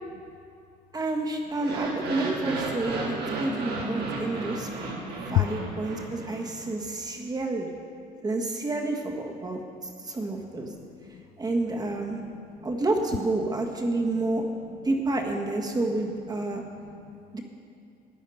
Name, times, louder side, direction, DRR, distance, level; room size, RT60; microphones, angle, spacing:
voice 1, 0.9-4.7 5.2-7.7 8.2-9.6 10.1-10.7 11.4-12.2 12.6-14.4 14.8-16.6 17.3-17.4, right 2 dB, 25° right, 2 dB, 1.6 m, -29 dB
sound 1, 1.5-6.7, right 3 dB, 65° right, 2.2 m, -33 dB
voice 2, 4.5-5.1 5.3-5.4 10.6-11.3 12.0-12.7 13.8-14.3 16.4-17.2, left 18 dB, 75° left, 13 dB, 0.5 m, -34 dB
13.5 x 9.3 x 5.7 m, 2.4 s
cardioid pair, 110°, 17 cm